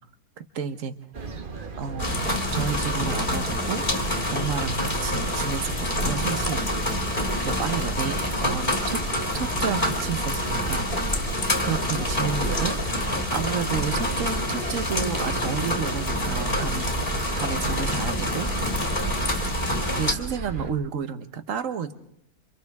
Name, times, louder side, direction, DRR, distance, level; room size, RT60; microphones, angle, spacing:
voice 1, 0.4-0.9 1.8-3.8 4.3-6.7 7.4-9.0 9.3-10.9 11.5-12.8 13.3-16.9 17.4-18.7 20.0-21.9, right 7 dB, 60° right, 11 dB, 1.4 m, -31 dB
sound 1, 1.1-20.7, right 4 dB, 35° right, 1.1 m, -34 dB
sound 2, 2.0-20.1, left 1 dB, 30° left, 2.0 m, -27 dB
28.0 x 26.0 x 3.6 m, 0.74 s
omnidirectional pair, 1.6 m